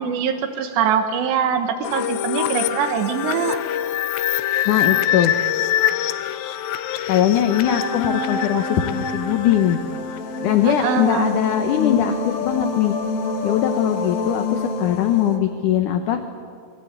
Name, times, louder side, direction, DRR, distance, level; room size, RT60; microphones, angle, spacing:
voice 1, 0.0-3.6 10.6-11.4, right 7 dB, 85° right, 7 dB, 3.7 m, -23 dB
sound 1, 1.8-10.5, left 12 dB, 85° left, 3.1 m, -25 dB
voice 2, 4.7-5.4 7.1-9.8 10.4-13.0 13.4-16.3, left 10 dB, 70° left, 7 dB, 2.1 m, -21 dB
sound 2, 7.6-15.4, left 3 dB, 45° left, 3.1 m, -27 dB
27.0 x 22.5 x 8.2 m, 2.3 s
omnidirectional pair, 4.9 m